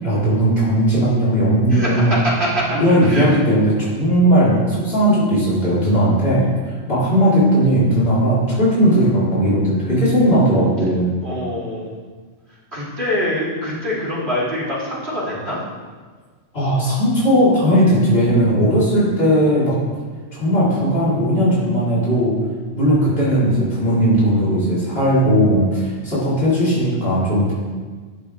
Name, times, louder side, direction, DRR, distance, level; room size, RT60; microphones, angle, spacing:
voice 1, 0.0-2.1 2.8-6.5 6.9-11.1 16.5-19.8 20.3-22.3 22.7-27.5, equal, 60° left, -10 dB, 4.5 m, -17 dB
voice 2, 1.7-3.3 10.3-10.4 11.2-12.0 12.5-15.6, equal, 65° right, -8 dB, 4.0 m, -24 dB
14.0 x 11.0 x 3.5 m, 1.5 s
omnidirectional pair, 1.2 m